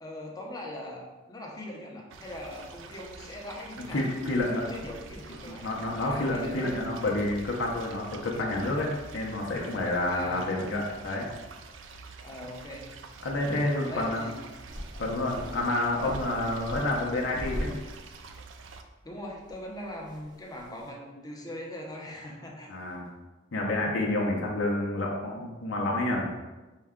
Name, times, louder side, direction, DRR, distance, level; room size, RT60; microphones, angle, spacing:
voice 1, 0.0-4.1 4.4-6.7 10.1-10.8 12.2-12.9 13.9-14.4 19.0-22.7, left 1 dB, 20° left, -1 dB, 0.7 m, -41 dB
sound 1, 2.1-18.8, right 4 dB, 85° right, 0.4 m, -47 dB
voice 2, 3.9-4.6 5.5-11.3 13.2-14.2 15.0-17.8 22.7-23.0 23.5-26.3, left 2 dB, 80° left, -2 dB, 0.7 m, -29 dB
sound 2, 14.7-18.3 18.6-18.7 19.3-20.9, equal, 20° right, 0.6 m, -40 dB
5.4 x 2.2 x 3.6 m, 1.2 s
head